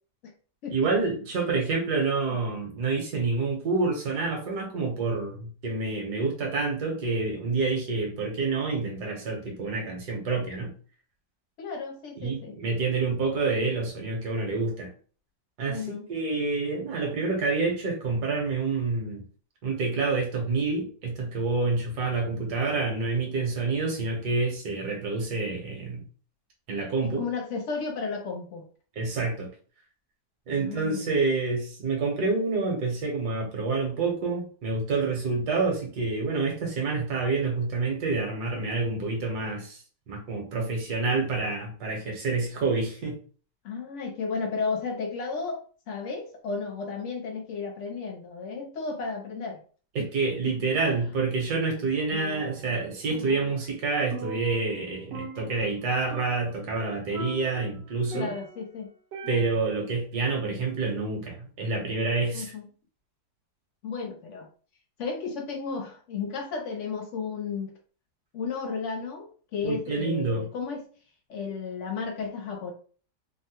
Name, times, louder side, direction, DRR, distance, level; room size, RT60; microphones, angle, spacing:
voice 1, 0.7-10.7 12.2-14.9 15.6-19.2 19.6-26.0 26.7-27.2 29.0-29.5 30.5-43.2 49.9-58.3 59.3-62.5 69.6-70.5, right 3 dB, 70° right, 0 dB, 1.5 m, -28 dB
voice 2, 11.6-12.6 15.7-16.1 27.0-28.7 30.6-31.1 43.6-45.6 45.9-49.6 50.0-50.1 50.4-50.7 58.1-58.9 59.2-59.6 62.3-62.6 63.8-64.5 65.0-67.7 68.3-70.9 71.3-72.7, left 5 dB, 85° left, 2 dB, 0.6 m, -33 dB
Percussion, 52.1-52.8 53.1-54.9 55.1-55.8 56.1-56.6 57.1-58.7 59.1-59.8, right 2 dB, 90° right, 1.3 m, -40 dB
3.6 x 2.1 x 2.8 m, 0.41 s
omnidirectional pair, 1.8 m